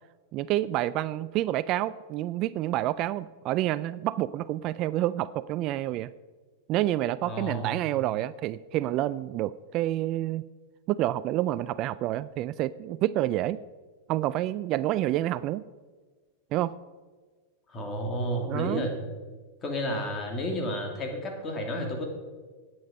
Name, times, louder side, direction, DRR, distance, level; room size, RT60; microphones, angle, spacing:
voice 1, 0.3-6.1 6.7-10.4 10.9-13.6 14.1-15.7 16.5-16.7 18.5-18.9, right 14 dB, 45° right, 17 dB, 0.3 m, -28 dB
voice 2, 7.2-7.8 17.7-18.9 19.6-22.1, equal, 25° left, 2 dB, 2.8 m, -31 dB
10.5 x 8.7 x 5.3 m, 1.4 s
hypercardioid pair, 120°, 0 cm